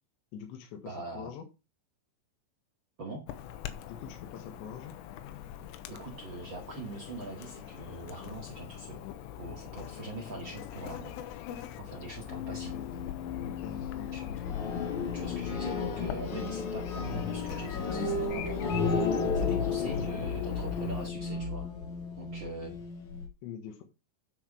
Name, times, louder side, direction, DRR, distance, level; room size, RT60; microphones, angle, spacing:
voice 1, 0.3-1.5 3.9-4.9 12.4-12.9 13.4-14.4 19.6-20.3 23.4-23.8, left 8 dB, 70° left, 4 dB, 3.5 m, -44 dB
voice 2, 0.8-1.3 3.0-3.2 5.9-9.0 9.4-11.2 11.8-12.7 14.1-14.2 14.5-14.6 15.1-21.7 22.2-22.7, right 3 dB, 70° right, 0 dB, 1.1 m, -42 dB
Chirp tweet / Buzz, 3.3-21.1, left 10 dB, 85° left, 3.5 m, -42 dB
sound 1, 12.3-23.3, left 5 dB, 50° left, 2.5 m, -33 dB
10.0 x 6.5 x 4.9 m, 0.28 s
omnidirectional pair, 5.8 m